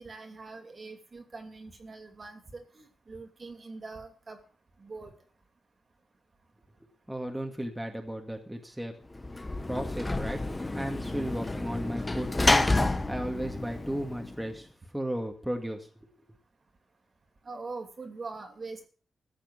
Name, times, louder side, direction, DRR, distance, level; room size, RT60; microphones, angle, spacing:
voice 1, 0.0-4.4 4.8-5.1 17.5-18.9, right 3 dB, 35° right, 6 dB, 2.8 m, -43 dB
voice 2, 7.1-8.9 9.6-10.4 10.7-12.7 13.1-14.7 14.9-15.9, equal, 5° right, 2 dB, 2.0 m, -34 dB
Sliding door / Slam, 9.1-14.5, left 2 dB, 15° left, 1.2 m, -29 dB
15.0 x 6.7 x 9.7 m, 0.42 s
wide cardioid pair, 140°, 0 cm